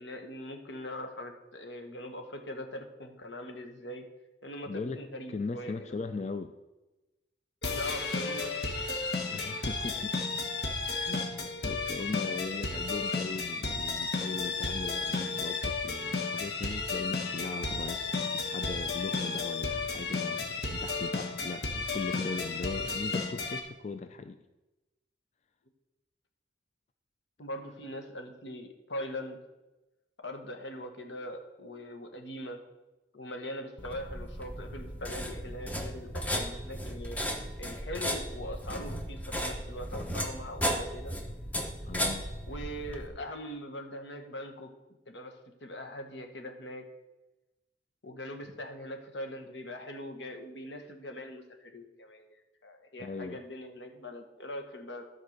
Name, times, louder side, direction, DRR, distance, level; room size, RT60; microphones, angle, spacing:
voice 1, 0.0-4.0 4.4-5.9 7.7-8.5 10.0-10.1 27.4-29.4 30.2-32.6 33.1-37.2 37.6-41.2 42.5-44.7 45.1-45.3 45.6-46.8 48.0-55.0, left 1 dB, 90° left, 5 dB, 1.4 m, -41 dB
voice 2, 4.7-5.0 5.3-6.5 9.3-10.2 11.0-11.4 11.6-24.4 41.8-42.3 53.0-53.4, left 4 dB, 40° left, 8 dB, 0.4 m, -39 dB
sound 1, 7.6-23.6, left 4 dB, 65° left, 1.3 m, -33 dB
sound 2, 33.8-43.1, equal, 10° left, 0.9 m, -35 dB
12.0 x 4.7 x 6.6 m, 1.0 s
head